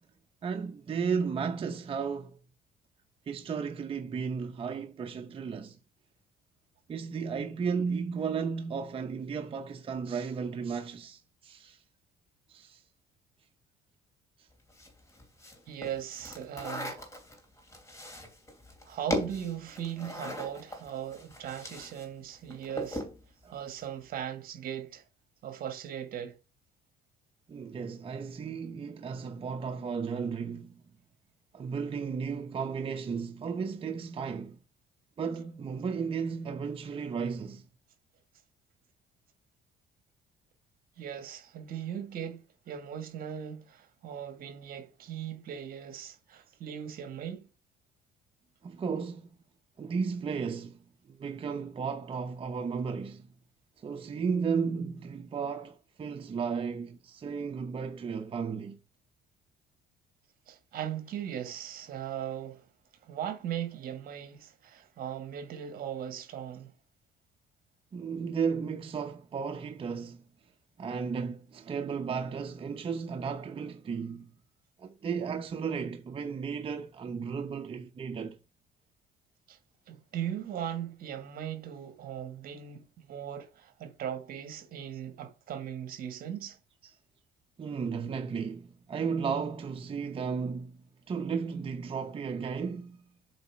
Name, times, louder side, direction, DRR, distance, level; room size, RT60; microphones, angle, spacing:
voice 1, 0.4-2.4 3.3-5.8 6.9-11.8 12.5-12.8 14.4-14.5 22.5-22.6 23.4-23.6 27.5-30.8 31.5-34.6 35.2-37.6 48.6-49.3 49.8-50.8 51.1-53.3 53.8-58.8 67.9-70.2 70.8-74.3 74.8-78.4 87.6-93.0, right 6 dB, 35° right, 0.7 m, -34 dB
sound 1, 14.7-22.1 22.3-23.2, left 1 dB, 15° left, 2.8 m, -39 dB
voice 2, 15.7-17.0 18.8-23.0 23.5-25.0 25.4-26.4 41.0-47.5 60.5-62.6 63.0-66.7 79.5-79.6 79.9-86.6, right 9 dB, 60° right, 1.5 m, -38 dB
7.9 x 4.1 x 4.5 m
cardioid pair, 110°, 17 cm